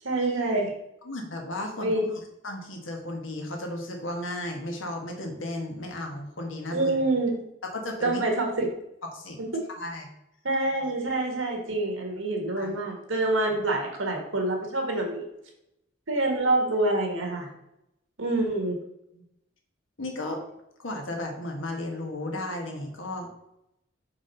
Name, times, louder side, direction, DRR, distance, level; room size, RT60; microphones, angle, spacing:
voice 1, 0.0-0.7 1.8-2.1 6.7-7.4 8.0-8.7 9.5-9.6 10.4-15.3 16.1-17.5 18.2-18.8, right 2 dB, 85° right, 1 dB, 1.6 m, -26 dB
voice 2, 1.0-2.0 2.4-6.9 7.8-8.2 9.1-9.4 9.7-10.1 12.6-12.8 19.1-19.2 20.0-20.4 20.8-23.3, left 1 dB, 85° left, 2 dB, 1.3 m, -34 dB
4.8 x 3.9 x 5.4 m, 0.84 s
head